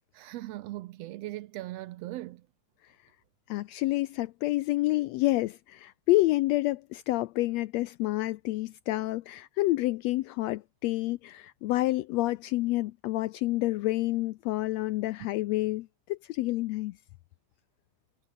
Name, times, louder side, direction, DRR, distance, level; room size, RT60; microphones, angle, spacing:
voice 1, 0.1-2.5, right 16 dB, 80° right, 1.5 m, -39 dB
voice 2, 3.5-17.0, left 18 dB, 85° left, 1.5 m, -28 dB
omnidirectional pair, 3.6 m